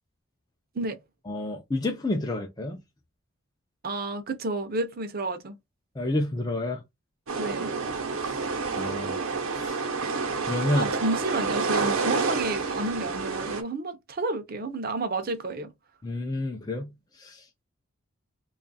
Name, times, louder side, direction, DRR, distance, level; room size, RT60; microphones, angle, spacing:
voice 1, 1.3-2.8 6.0-6.8 8.2-8.4 8.8-9.2 9.5-9.8 10.4-10.9 16.0-17.4, left 2 dB, 15° left, 0.4 m, -29 dB
voice 2, 3.8-5.6 7.4-7.7 10.8-15.7, right 2 dB, 45° right, 0.6 m, -31 dB
sound 1, 7.3-13.6, right 4 dB, 70° right, 0.8 m, -29 dB
3.0 x 2.4 x 4.0 m
head